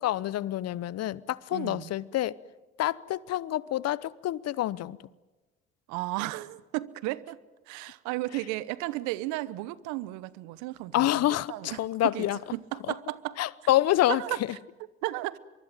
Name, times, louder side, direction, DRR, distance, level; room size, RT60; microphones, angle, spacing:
voice 1, 0.0-2.4 2.8-5.0 10.9-12.4 13.4-14.2, left 14 dB, 55° left, 0.9 m, -27 dB
voice 2, 1.5-1.9 5.9-7.4 7.7-12.3 12.5-13.4 14.1-14.4 15.0-15.4, right 18 dB, 75° right, 1.0 m, -34 dB
24.0 x 23.5 x 9.1 m
hypercardioid pair, 55°, 29 cm